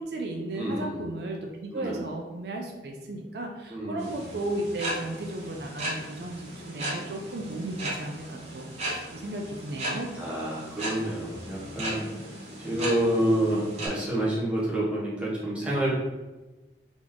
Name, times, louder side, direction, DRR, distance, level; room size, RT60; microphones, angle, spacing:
voice 1, 0.0-10.1, right 1 dB, 70° right, 2 dB, 0.5 m, -35 dB
voice 2, 0.5-1.1 1.7-2.0 3.7-4.2 10.2-12.0 12.6-15.9, right 1 dB, 5° right, -7 dB, 1.2 m, -28 dB
sound 1, 4.0-13.9, right 1 dB, 40° right, 1.1 m, -36 dB
4.1 x 2.9 x 3.6 m, 1.1 s
head